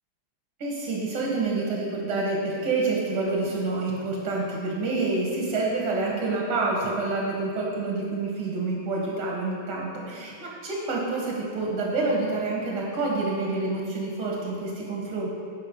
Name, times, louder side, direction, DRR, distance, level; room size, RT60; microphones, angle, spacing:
voice 1, 0.6-15.3, right 3 dB, 80° right, -3 dB, 2.3 m, -28 dB
8.5 x 5.6 x 5.2 m, 2.2 s
omnidirectional pair, 2.3 m